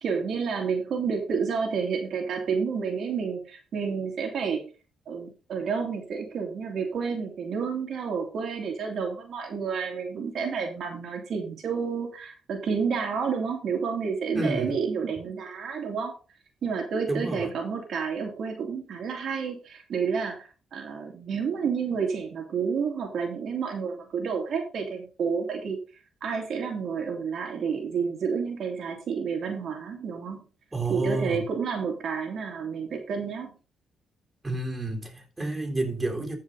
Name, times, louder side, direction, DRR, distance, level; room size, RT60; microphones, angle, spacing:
voice 1, 0.0-4.6 5.1-16.2 16.6-25.8 26.2-30.4 30.9-33.6, right 6 dB, 60° right, 1 dB, 2.6 m, -30 dB
voice 2, 14.3-14.8 17.1-17.5 30.7-31.4 34.4-36.4, right 2 dB, 15° right, 1 dB, 3.8 m, -30 dB
14.5 x 5.5 x 4.0 m, 0.34 s
cardioid pair, 90°, 0 cm